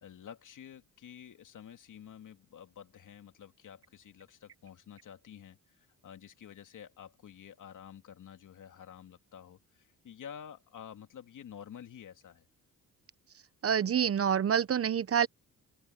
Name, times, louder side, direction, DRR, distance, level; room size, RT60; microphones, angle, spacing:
voice 1, 0.0-12.5, left 8 dB, 60° left, 2.8 m, -50 dB
voice 2, 13.6-15.3, right 8 dB, 40° right, 0.8 m, -27 dB
open air
cardioid pair, 85°, 35 cm